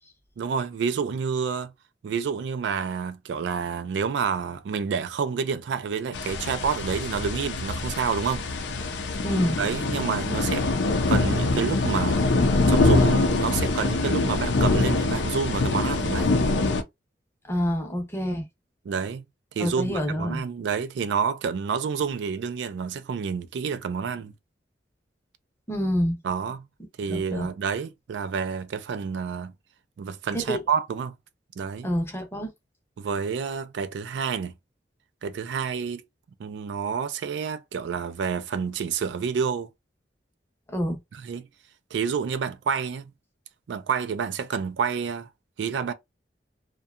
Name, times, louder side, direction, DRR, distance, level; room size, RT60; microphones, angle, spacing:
voice 1, 0.4-1.7 2.0-8.4 9.6-10.7 11.1-12.2 12.7-16.3 18.9-19.2 19.5-24.3 26.2-26.7 27.0-29.5 30.0-31.2 31.6-31.9 33.0-34.5 35.2-36.0 36.4-39.7 41.1-41.5 41.9-43.1 43.7-45.3 45.6-45.9, right 6 dB, 75° right, 0.3 m, -29 dB
sound 1, 6.1-16.8, left 3 dB, 80° left, 0.5 m, -24 dB
voice 2, 9.2-9.6 17.5-18.4 19.6-20.4 25.7-26.2 27.1-27.5 30.3-30.6 31.8-32.5 40.7-41.0, equal, 15° left, 0.7 m, -27 dB
2.7 x 2.2 x 2.4 m
head